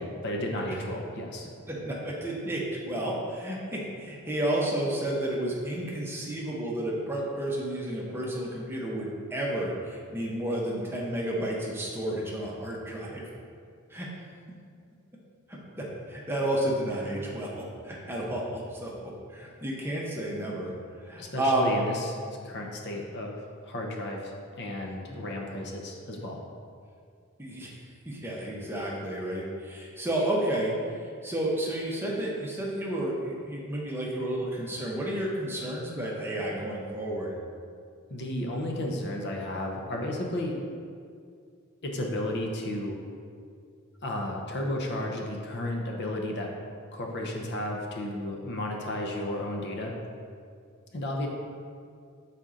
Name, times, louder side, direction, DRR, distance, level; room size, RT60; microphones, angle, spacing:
voice 1, 0.0-1.5 21.2-22.2 22.4-23.3 23.6-26.4 38.1-40.5 41.8-43.0 44.0-46.5 46.9-49.9 50.9-51.3, left 1 dB, 50° left, 0 dB, 0.7 m, -33 dB
voice 2, 1.7-13.3 13.9-14.1 15.5-18.9 19.3-20.7 21.0-21.7 27.4-27.7 28.1-37.3, right 1 dB, 10° right, -4 dB, 0.8 m, -31 dB
6.4 x 4.1 x 3.7 m, 2.2 s
head